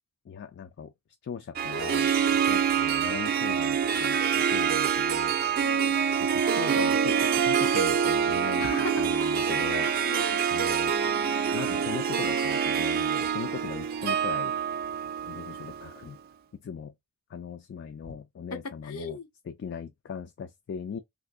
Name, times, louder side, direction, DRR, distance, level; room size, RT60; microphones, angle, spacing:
voice 1, 0.3-0.9 1.2-5.4 6.2-8.7 9.0-9.9 10.5-10.9 11.5-14.6 15.3-16.2 16.5-16.9 17.3-19.2 19.5-21.0, left 6 dB, 55° left, 0.3 m, -39 dB
Harp, 1.6-16.0, right 7 dB, 45° right, 0.4 m, -26 dB
voice 2, 5.6-6.0 8.6-9.4 10.0-10.5 18.8-19.3, left 4 dB, 80° left, 0.7 m, -37 dB
2.6 x 2.5 x 3.6 m
head